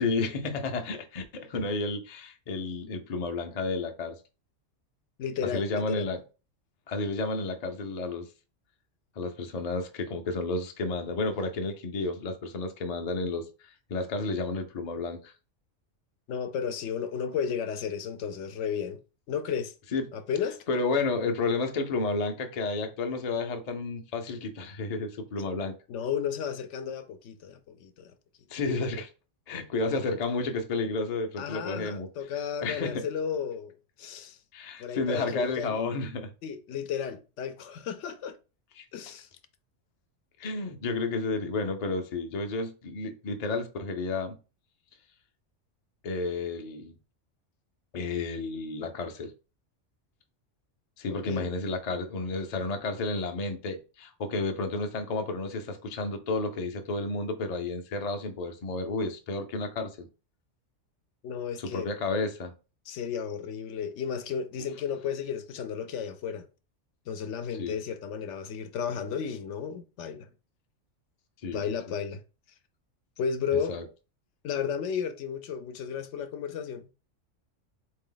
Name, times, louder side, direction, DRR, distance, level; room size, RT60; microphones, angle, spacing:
voice 1, 0.0-4.2 5.5-6.2 6.9-8.3 9.2-15.3 19.9-20.0 20.7-25.7 28.5-29.1 29.5-32.1 32.6-33.0 34.5-36.3 38.8-38.9 40.4-44.4 46.0-46.9 47.9-49.3 51.0-60.1 61.6-62.5 67.6-67.8 71.4-71.7 73.5-73.8, left 3 dB, 45° left, 0.5 m, -31 dB
voice 2, 5.2-6.1 16.3-19.0 19.3-19.7 20.1-20.6 25.9-28.1 31.4-34.4 34.8-35.8 36.4-38.4 38.9-39.3 51.1-51.5 61.2-61.9 62.9-66.5 67.1-70.3 71.5-72.2 73.2-73.7 74.4-76.9, left 7 dB, 75° left, 0.9 m, -33 dB
3.9 x 2.7 x 3.8 m
omnidirectional pair, 1.3 m